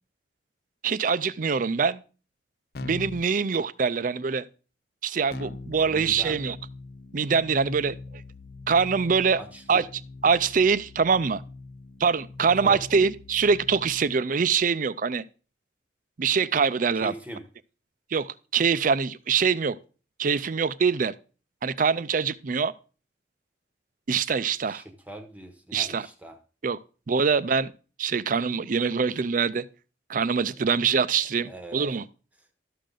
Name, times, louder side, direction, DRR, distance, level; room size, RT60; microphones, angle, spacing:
voice 1, 0.8-2.0 2.8-4.4 5.0-6.6 7.1-8.0 8.7-9.4 9.7-9.9 10.2-11.4 12.0-15.2 16.2-17.1 18.1-18.3 18.5-19.8 20.2-21.1 21.6-22.7 24.1-24.8 25.7-26.0 26.6-26.8 27.1-27.7 28.0-29.6 30.1-32.0, right 5 dB, 45° right, 0.5 m, -24 dB
Keyboard (musical), 2.8-3.3 5.3-14.2, left 3 dB, 55° left, 0.5 m, -42 dB
voice 2, 5.9-6.4 9.3-9.8 12.6-12.8 16.9-17.5 24.6-26.4 30.6-30.7 31.4-31.8, right 1 dB, 10° right, 1.0 m, -41 dB
12.5 x 6.6 x 3.9 m
head